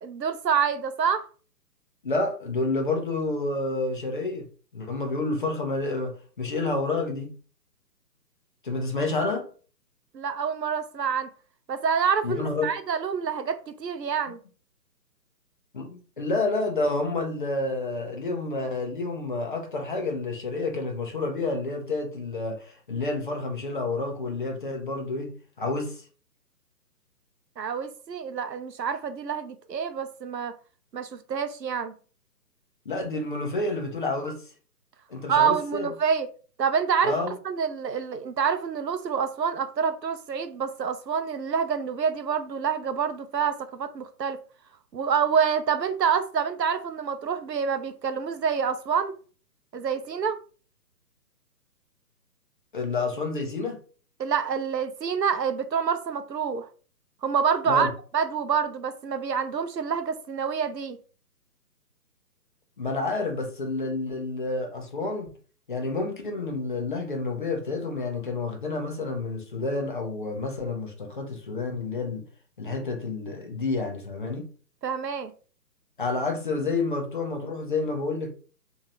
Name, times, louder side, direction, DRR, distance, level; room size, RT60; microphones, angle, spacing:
voice 1, 0.0-1.3 10.1-11.3 11.7-14.4 27.6-30.5 30.9-31.9 35.3-36.3 36.6-37.1 37.4-44.4 44.9-49.1 49.7-50.4 54.2-56.7 57.2-57.9 58.1-61.0 74.8-75.3, right 6 dB, 85° right, 0.7 m, -27 dB
voice 2, 2.0-4.5 4.7-7.3 8.6-9.5 12.2-12.7 15.7-25.3 25.6-26.0 32.9-34.4 35.1-35.9 37.0-37.3 52.7-53.8 57.7-57.9 62.8-65.3 65.7-72.2 72.6-74.5 76.0-78.3, left 3 dB, 30° left, 0.6 m, -29 dB
3.7 x 2.6 x 2.8 m
figure-of-eight pair, 140°, 49 cm